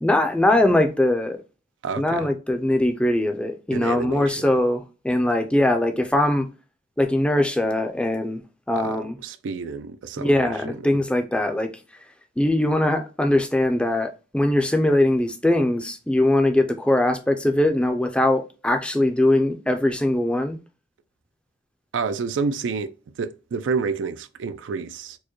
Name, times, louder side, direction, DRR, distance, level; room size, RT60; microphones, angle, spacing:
voice 1, 0.0-1.4 2.0-6.5 7.0-8.4 8.7-9.2 10.2-11.7 12.4-20.6, left 1 dB, 5° left, 0.4 m, -21 dB
voice 2, 1.8-2.3 3.7-4.5 8.8-11.0 21.9-25.2, right 5 dB, 90° right, 0.4 m, -29 dB
4.5 x 2.1 x 3.0 m
head